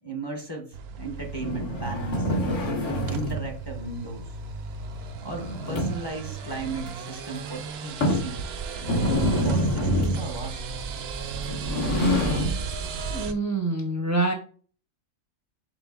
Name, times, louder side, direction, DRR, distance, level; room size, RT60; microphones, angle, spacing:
voice 1, 0.0-2.3 3.1-4.3 5.2-8.4 9.3-10.6, right 2 dB, 25° left, 1 dB, 0.7 m, -36 dB
sound 1, 0.7-13.3, right 5 dB, 65° right, 0.7 m, -35 dB
sound 2, 1.3-3.5 5.3-6.2 6.8-6.9 7.4-7.5 8.0-8.3 8.8-10.3 11.3-12.6, left 1 dB, 60° left, 1.7 m, -26 dB
voice 2, 13.1-14.3, right 2 dB, 20° right, 2 dB, 0.4 m, -26 dB
6.0 x 3.7 x 2.4 m, 0.40 s
omnidirectional pair, 1.5 m